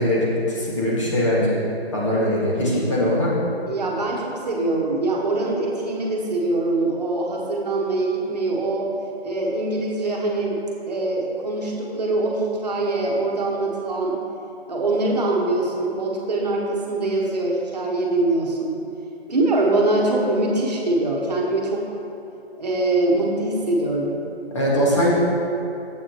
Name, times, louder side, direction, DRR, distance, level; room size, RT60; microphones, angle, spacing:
voice 1, 0.0-1.6 1.9-3.3 24.5-25.1, equal, 30° left, -6 dB, 1.8 m, -21 dB
voice 2, 3.7-8.9 9.2-10.6 10.9-14.2 14.7-18.8 19.3-21.9 22.6-24.2, right 2 dB, 40° right, -2 dB, 1.4 m, -23 dB
11.5 x 7.9 x 3.0 m, 2.9 s
figure-of-eight pair, 170°, 32 cm